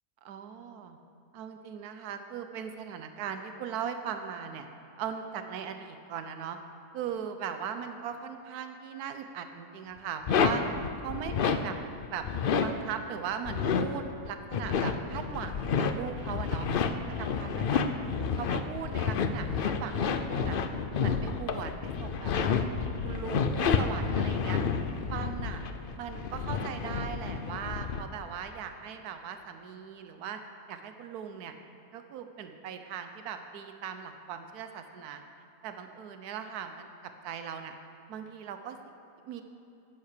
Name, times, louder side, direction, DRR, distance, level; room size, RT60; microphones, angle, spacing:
voice 1, 0.2-1.0 1.3-4.7 5.0-6.6 6.9-10.6 11.0-12.2 12.6-16.7 17.2-17.8 18.3-20.6 21.0-22.7 23.0-24.6 25.1-25.6 26.0-30.4 30.7-31.5 31.9-35.2 35.6-37.8 38.1-38.8 39.2-39.4, right 8 dB, 75° right, 7 dB, 1.3 m, -39 dB
sound 1, 10.3-11.6 12.0-12.7 13.3-28.0, left 6 dB, 60° left, 0.5 m, -30 dB
10.0 x 9.4 x 6.6 m, 2.9 s
omnidirectional pair, 1.6 m